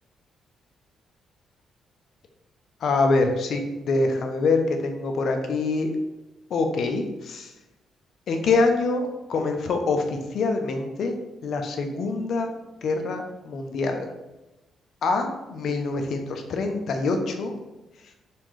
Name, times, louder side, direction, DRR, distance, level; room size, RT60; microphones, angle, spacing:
voice 1, 2.8-5.9 6.5-7.5 8.3-11.1 11.4-12.5 12.8-14.1 15.0-17.5, left 3 dB, 65° left, 5 dB, 0.6 m, -25 dB
4.3 x 3.6 x 3.2 m, 1.0 s
cardioid pair, 90°, 0 cm